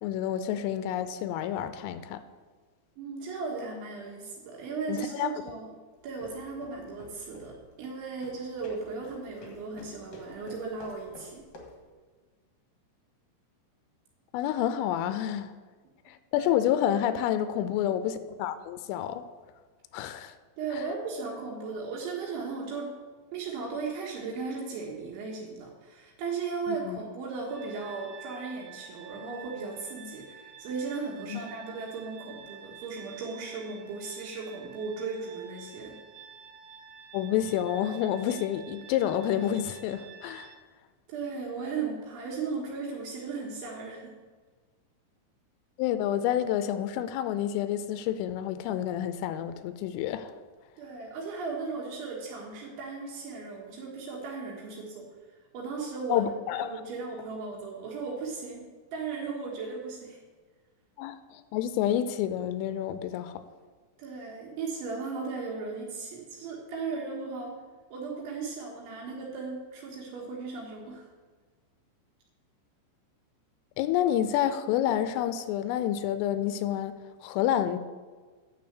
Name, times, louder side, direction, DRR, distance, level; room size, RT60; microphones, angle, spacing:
voice 1, 0.0-2.2 4.9-5.3 14.3-15.5 16.1-19.2 19.9-20.3 20.7-20.8 26.7-27.0 31.3-31.4 37.1-40.5 45.8-50.3 56.1-56.8 61.0-63.4 73.8-77.8, left 11 dB, 90° left, 3.2 m, -29 dB
voice 2, 3.0-5.7 6.0-7.5 7.8-11.5 16.3-16.5 20.6-22.9 23.3-36.0 41.1-44.2 50.8-55.1 55.5-58.6 58.9-60.2 64.0-67.6 67.9-71.1, right 4 dB, 75° right, 3.7 m, -36 dB
sound 1, 6.0-11.9, left 2 dB, 60° left, 1.8 m, -51 dB
sound 2, 27.5-40.6, right 8 dB, 90° right, 3.2 m, -49 dB
9.5 x 6.9 x 8.1 m
omnidirectional pair, 5.7 m